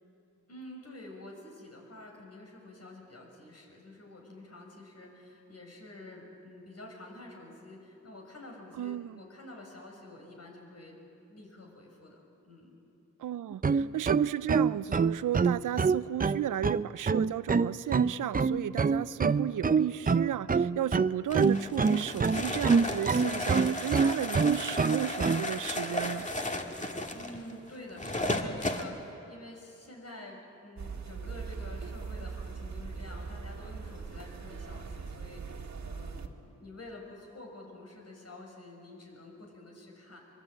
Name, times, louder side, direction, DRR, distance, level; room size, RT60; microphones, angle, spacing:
voice 1, 0.5-11.0 11.3-12.8 27.1-40.2, left 1 dB, 55° left, 1 dB, 6.7 m, -48 dB
voice 2, 8.8-9.2 13.2-26.3, right 12 dB, 85° right, 18 dB, 0.5 m, -34 dB
sound 1, 13.5-25.4, right 5 dB, 30° right, 0.6 m, -26 dB
sound 2, 21.3-28.9, left 1 dB, 25° left, 2.2 m, -34 dB
sound 3, 30.8-36.3, right 5 dB, 65° right, 1.9 m, -40 dB
24.5 x 22.5 x 8.9 m, 2.9 s
cardioid pair, 80°, 30 cm